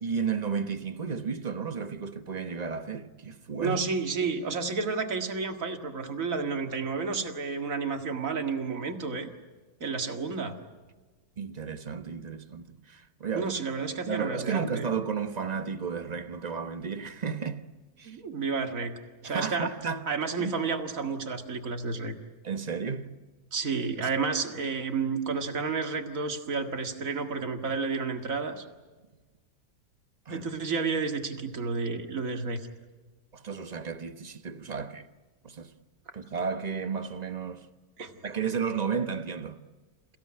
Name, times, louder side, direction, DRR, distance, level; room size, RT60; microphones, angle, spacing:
voice 1, 0.0-3.8 11.4-13.5 14.0-17.7 18.0-18.2 19.2-20.1 20.4-20.5 22.4-23.1 30.3-30.5 33.3-35.1 35.4-35.7 36.1-37.7 38.2-39.6, right 6 dB, 30° right, 1.0 m, -33 dB
voice 2, 3.6-9.3 9.8-10.6 13.4-14.9 18.1-18.9 19.2-19.7 20.1-22.2 23.5-28.7 30.3-32.7 38.0-38.1, right 4 dB, 60° right, 2.3 m, -31 dB
28.5 x 16.0 x 9.7 m
omnidirectional pair, 1.6 m